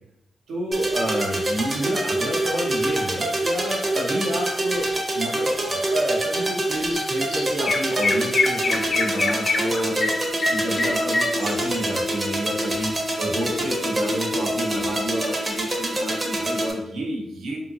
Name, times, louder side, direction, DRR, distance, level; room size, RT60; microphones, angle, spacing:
voice 1, 0.5-4.9 5.1-10.1 10.5-17.6, right 1 dB, 85° right, -2 dB, 0.6 m, -29 dB
sound 1, 0.7-16.7, right 1 dB, 30° right, 0.6 m, -26 dB
Chirp tweet, 6.9-7.0 7.3-11.9, left 3 dB, 55° left, 0.4 m, -25 dB
2.7 x 2.5 x 2.6 m, 0.89 s
cardioid pair, 75°, 0 cm